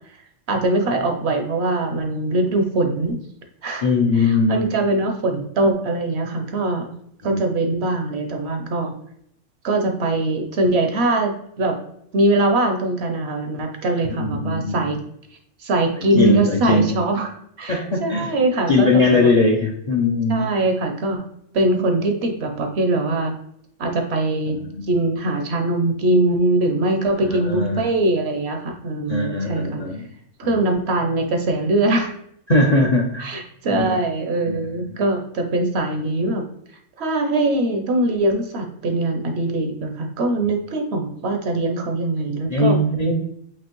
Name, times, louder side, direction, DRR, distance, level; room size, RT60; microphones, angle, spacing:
voice 1, 0.5-3.2 3.6-3.9 4.1-6.9 7.2-9.0 9.6-11.8 12.1-15.0 15.6-17.3 17.6-19.3 20.3-21.2 21.5-23.3 23.8-24.6 24.9-29.8 30.4-32.1 33.2-36.5 37.0-42.8, right 2 dB, 60° right, 4 dB, 0.8 m, -22 dB
voice 2, 3.8-4.7 7.2-7.4 14.0-14.9 16.1-16.9 17.7-18.3 18.7-20.5 24.5-24.9 27.3-27.9 29.1-30.0 30.4-30.6 32.5-33.3 33.7-34.0 34.5-34.9 42.5-43.1, left 2 dB, 50° left, 0 dB, 0.5 m, -20 dB
5.2 x 2.8 x 3.0 m, 0.71 s
omnidirectional pair, 1.3 m